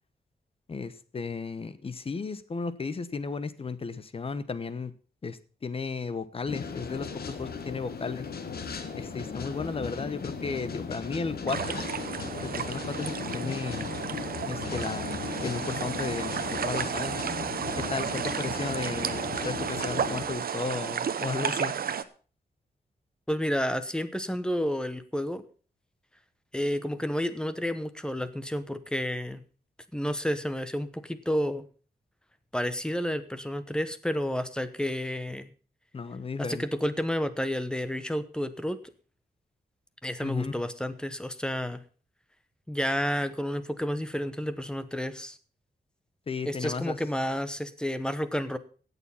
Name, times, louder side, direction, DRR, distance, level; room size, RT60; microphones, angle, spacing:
voice 1, 0.7-4.9 5.2-8.3 9.0-11.8 12.4-14.0 14.5-17.2 17.7-21.7 35.9-36.7 40.2-40.6 46.3-47.0, left 4 dB, 35° left, 14 dB, 0.9 m, -34 dB
sound 1, 6.5-20.3, left 5 dB, 75° left, 1.8 m, -37 dB
sound 2, 11.5-22.0, right 7 dB, 65° right, 0.9 m, -33 dB
voice 2, 23.3-25.4 26.5-29.4 29.9-31.6 32.5-35.5 36.5-38.8 40.0-41.8 42.7-45.4 46.5-48.6, equal, 5° left, 12 dB, 0.9 m, -30 dB
17.0 x 7.0 x 5.6 m, 0.40 s
wide cardioid pair, 175°, 16 cm